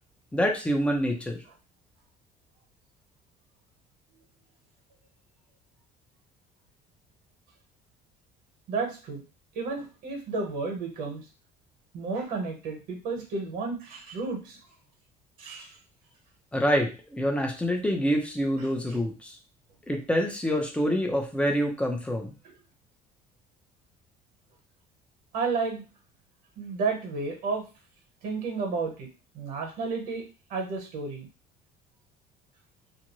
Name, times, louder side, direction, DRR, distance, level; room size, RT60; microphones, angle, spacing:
voice 1, 0.3-1.4 16.5-19.4 19.9-22.3, equal, 5° left, 2 dB, 0.7 m, -26 dB
voice 2, 8.7-9.2 9.5-11.2 11.9-14.6 15.4-15.7 25.3-25.8 26.6-27.6 28.2-29.1 29.3-30.2 30.5-31.3, right 4 dB, 70° right, 2 dB, 1.1 m, -32 dB
2.5 x 2.2 x 3.0 m, 0.32 s
cardioid pair, 115°, 16 cm